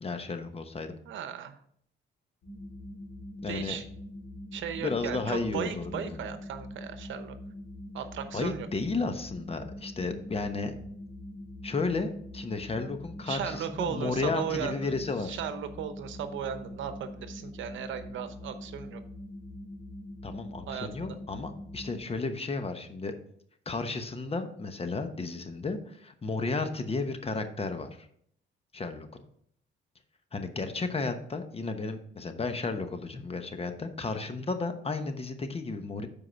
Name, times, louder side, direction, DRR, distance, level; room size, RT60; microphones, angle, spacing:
voice 1, 0.0-0.9 3.4-3.8 4.8-6.1 8.3-10.7 11.6-15.4 20.2-23.1 23.7-27.9 28.7-29.1 30.3-36.1, left 3 dB, 30° left, 8 dB, 1.0 m, -33 dB
voice 2, 1.0-1.6 3.5-3.8 4.5-7.4 7.9-8.7 13.3-19.0 20.7-21.1, right 8 dB, 75° right, 10 dB, 0.9 m, -36 dB
sound 1, 2.4-22.0, left 1 dB, 75° left, 2.5 m, -43 dB
7.6 x 4.8 x 5.7 m, 0.66 s
cardioid pair, 90°, 20 cm